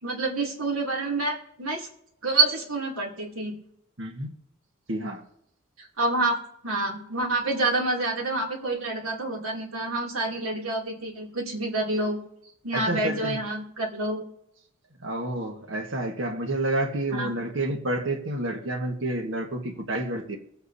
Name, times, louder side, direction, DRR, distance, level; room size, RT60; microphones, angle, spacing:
voice 1, 0.0-1.9 2.2-3.5 5.8-6.4 6.6-12.2 12.6-14.2 17.1-17.3, right 2 dB, 85° right, 2.7 m, -27 dB
voice 2, 4.0-4.3 4.9-5.2 12.7-13.4 15.0-20.4, right 1 dB, 65° right, 1.6 m, -29 dB
23.5 x 8.3 x 2.7 m
head